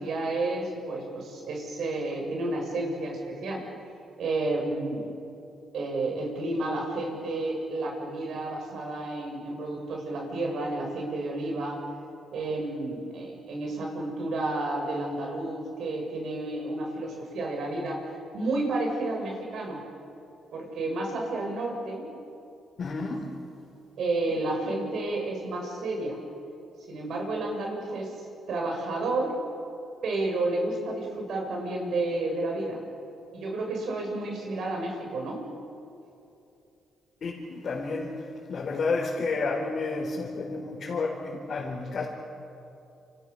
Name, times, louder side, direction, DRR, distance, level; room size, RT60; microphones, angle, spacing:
voice 1, 0.0-3.6 4.2-5.1 5.7-11.8 12.3-18.0 18.3-19.8 20.5-22.1 24.0-26.2 26.9-28.2 28.5-29.3 30.0-32.8 33.3-35.4, right 2 dB, 65° right, 1 dB, 7.3 m, -31 dB
voice 2, 22.8-23.3 37.2-42.1, left 3 dB, 50° left, -3 dB, 4.3 m, -31 dB
28.5 x 27.5 x 7.0 m, 2.7 s
cardioid pair, 90°, 0 cm